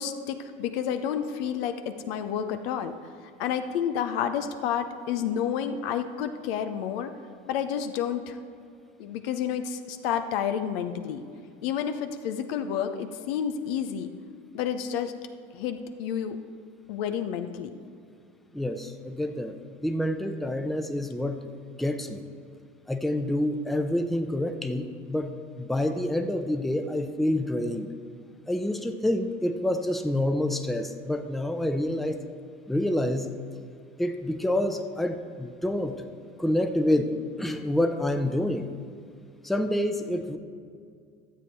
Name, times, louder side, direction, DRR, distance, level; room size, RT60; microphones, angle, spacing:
voice 1, 0.0-3.0 3.4-7.1 7.5-8.4 9.0-11.2 11.6-14.1 14.5-15.1 15.5-16.4 16.9-17.7, left 8 dB, 70° left, 8 dB, 0.8 m, -30 dB
voice 2, 18.5-19.5 19.8-21.4 21.8-22.2 22.9-25.3 25.6-27.9 28.5-32.2 32.7-33.3 34.0-36.0 36.4-38.7 39.4-40.4, left 1 dB, ahead, 7 dB, 0.7 m, -27 dB
12.5 x 7.6 x 4.5 m, 2.3 s
hypercardioid pair, 65°, 30 cm